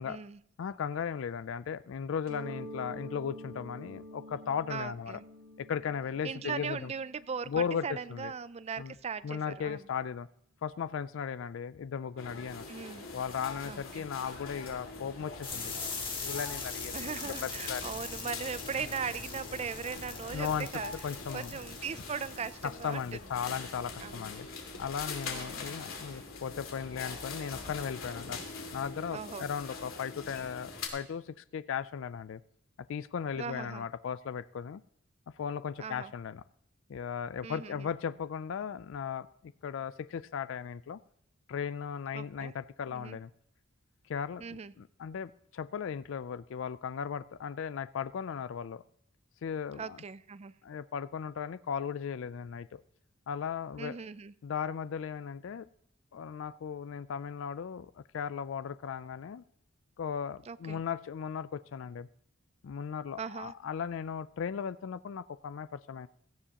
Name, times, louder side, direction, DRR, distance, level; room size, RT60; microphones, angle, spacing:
voice 1, 0.0-0.4 4.7-5.2 6.2-7.5 7.8-9.8 12.7-13.1 13.6-14.0 16.9-20.9 21.3-23.0 24.0-24.3 25.3-25.6 29.1-29.4 33.4-33.8 35.8-36.1 37.4-37.9 42.1-42.5 42.9-43.2 44.4-44.7 49.8-50.5 53.8-54.3 60.5-60.8 63.2-63.5, right 6 dB, 30° right, 16 dB, 0.4 m, -39 dB
voice 2, 0.6-5.2 5.6-6.9 7.5-8.3 8.8-8.9 9.2-10.3 10.6-12.7 13.1-15.9 16.2-17.1 17.4-17.9 20.3-20.7 21.0-21.5 22.6-24.5 24.8-28.4 28.7-32.4 32.9-34.8 35.4-36.4 36.9-41.0 41.5-43.3 44.1-48.8 49.4-50.0 50.6-52.8 53.3-54.0 54.4-55.7 56.1-59.4 60.0-62.1 62.6-66.1, left 7 dB, 70° left, 16 dB, 0.4 m, -37 dB
Mallet percussion, 2.3-7.8, equal, 80° right, 2.7 m, -47 dB
sound 1, 12.2-30.9, left 4 dB, 90° left, 2.4 m, -43 dB
sound 2, 15.4-23.3, left 4 dB, 25° left, 2.1 m, -42 dB
17.0 x 13.5 x 2.9 m, 0.70 s
head